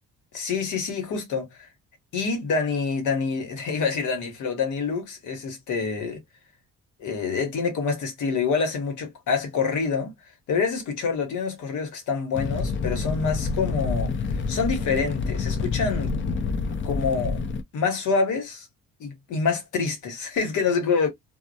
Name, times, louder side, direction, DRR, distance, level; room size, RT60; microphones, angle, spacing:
voice 1, 0.3-1.7 2.1-6.2 7.0-10.1 10.5-14.1 14.5-16.1 16.8-17.4 17.7-18.7 19.0-21.1, left 5 dB, 80° left, 1.2 m, -26 dB
Fire, 12.3-17.6, left 4 dB, 40° left, 0.5 m, -27 dB
2.3 x 2.1 x 2.7 m
cardioid pair, 90°, 30 cm